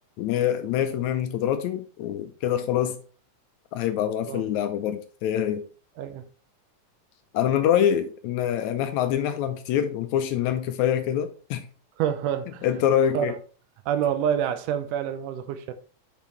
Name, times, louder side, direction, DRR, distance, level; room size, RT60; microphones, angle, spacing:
voice 1, 0.2-3.0 3.7-5.6 7.3-11.7 12.6-13.3, left 10 dB, 80° left, 1.8 m, -25 dB
voice 2, 12.0-12.7 13.1-13.3 13.9-15.7, right 9 dB, 90° right, 2.2 m, -27 dB
6.6 x 5.3 x 3.0 m
omnidirectional pair, 3.6 m